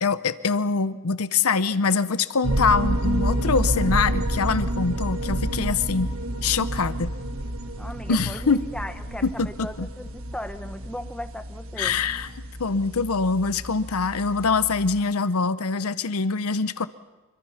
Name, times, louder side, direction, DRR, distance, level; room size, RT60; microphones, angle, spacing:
voice 1, 0.0-6.1 6.4-7.1 8.1-8.7 9.2-9.9 11.8-12.3 12.6-16.9, left 4 dB, 85° left, 14 dB, 0.8 m, -24 dB
sound 1, 2.4-15.0, right 1 dB, 70° right, 1.4 m, -29 dB
voice 2, 7.8-12.0, left 1 dB, 5° left, 9 dB, 0.9 m, -37 dB
25.5 x 24.0 x 5.8 m, 1.2 s
head